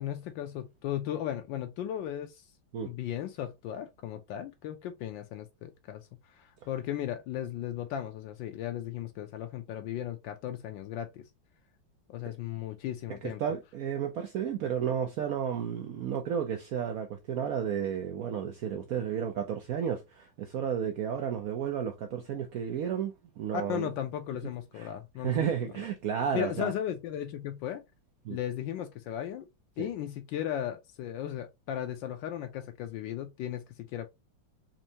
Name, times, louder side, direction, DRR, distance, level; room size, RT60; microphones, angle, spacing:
voice 1, 0.0-2.4 2.8-6.1 6.7-11.2 12.1-13.4 23.5-25.5 26.3-27.8 28.3-29.5 29.8-34.1, left 11 dB, 75° left, 1.3 m, -36 dB
voice 2, 13.1-23.9 24.8-24.9 25.2-26.7 28.2-28.4 29.8-29.9, right 8 dB, 85° right, 0.7 m, -32 dB
4.3 x 2.7 x 2.8 m
omnidirectional pair, 2.2 m